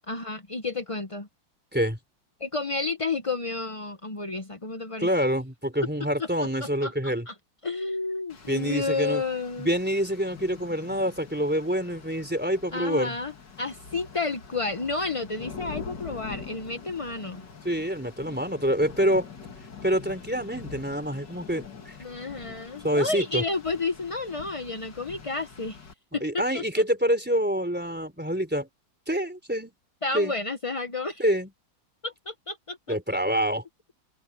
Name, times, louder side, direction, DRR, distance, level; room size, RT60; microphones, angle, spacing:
voice 1, 0.1-1.3 2.4-5.1 6.2-6.3 6.6-7.3 7.6-9.7 12.7-17.5 22.0-25.8 26.1-26.6 30.0-31.2 32.0-33.0, left 3 dB, 40° left, 0.4 m, -31 dB
voice 2, 5.0-7.3 8.5-9.2 9.6-13.2 17.6-19.3 19.8-22.0 22.8-23.4 26.2-28.7 29.1-29.7 30.1-30.3 31.2-31.5 32.9-33.6, equal, 5° right, 3.7 m, -26 dB
Rain, 8.3-25.9, left 5 dB, 60° left, 2.9 m, -44 dB
open air
omnidirectional pair, 2.1 m